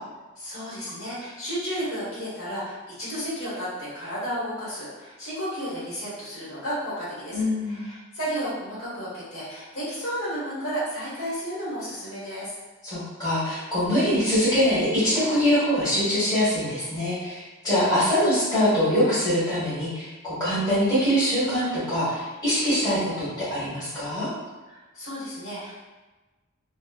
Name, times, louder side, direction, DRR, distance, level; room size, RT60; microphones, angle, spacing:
voice 1, 0.4-12.5 24.7-25.8, equal, 75° left, -10 dB, 1.2 m, -33 dB
voice 2, 7.3-7.8 12.8-24.3, equal, 20° left, -12 dB, 1.2 m, -23 dB
2.9 x 2.0 x 2.3 m, 1.2 s
head